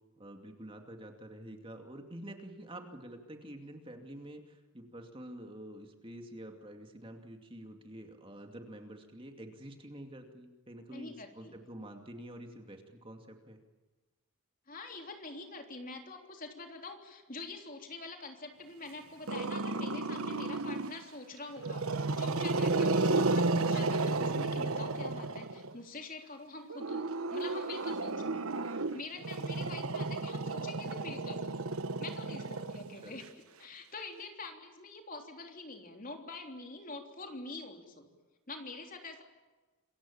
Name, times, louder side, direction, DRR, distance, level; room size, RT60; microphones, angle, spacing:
voice 1, 0.2-13.6 29.5-29.8 33.0-33.1, right 1 dB, 25° right, 4 dB, 2.4 m, -48 dB
voice 2, 10.9-11.6 14.7-31.4 32.0-33.3 33.6-38.1 38.5-39.2, left 3 dB, 40° left, 4 dB, 3.3 m, -46 dB
Growling, 19.3-21.0 21.6-25.7 26.7-33.2, right 3 dB, 70° right, 1.2 m, -32 dB
27.5 x 23.0 x 7.2 m, 1.2 s
head